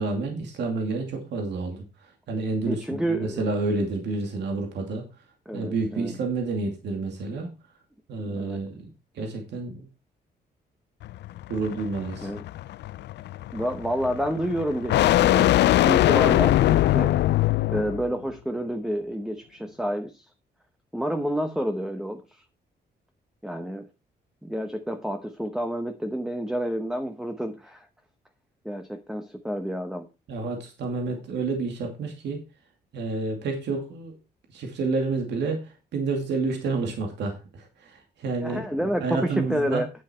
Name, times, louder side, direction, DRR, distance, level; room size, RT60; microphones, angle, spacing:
voice 1, 0.0-1.8 2.3-5.0 5.5-7.5 8.1-8.9 9.2-9.9 11.5-12.3 30.3-32.4 32.9-34.2 34.5-35.6 35.9-39.8, right 3 dB, 85° right, 2 dB, 2.5 m, -29 dB
voice 2, 2.7-3.5 5.5-6.2 8.3-8.6 12.2-12.4 13.5-15.5 15.8-17.1 17.7-20.3 20.9-22.4 23.4-23.9 24.4-27.9 28.6-30.1 38.4-39.9, equal, 5° right, 6 dB, 1.0 m, -29 dB
sound 1, 11.0-18.1, left 14 dB, 80° left, 0.4 m, -22 dB
9.6 x 7.5 x 4.4 m, 0.29 s
cardioid pair, 125°, 18 cm